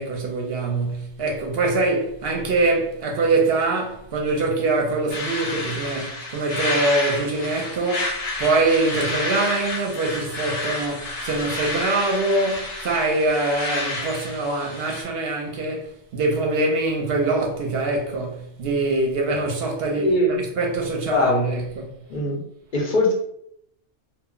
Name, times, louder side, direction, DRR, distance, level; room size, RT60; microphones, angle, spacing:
voice 1, 0.0-21.9, right 2 dB, 65° right, 0.7 m, -24 dB
sound 1, 5.1-15.0, left 2 dB, 75° left, 1.0 m, -30 dB
voice 2, 19.9-20.3 21.1-21.5 22.1-22.4 22.7-23.1, left 1 dB, 50° left, 0.7 m, -20 dB
2.2 x 2.1 x 3.6 m
omnidirectional pair, 1.2 m